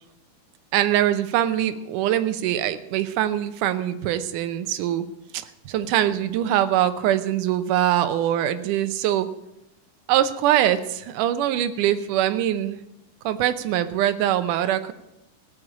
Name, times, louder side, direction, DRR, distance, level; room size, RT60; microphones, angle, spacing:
voice 1, 0.7-5.1 5.3-9.3 10.1-12.8 13.3-14.9, right 12 dB, 75° right, 11 dB, 2.2 m, -23 dB
17.0 x 6.6 x 8.5 m, 0.88 s
omnidirectional pair, 4.0 m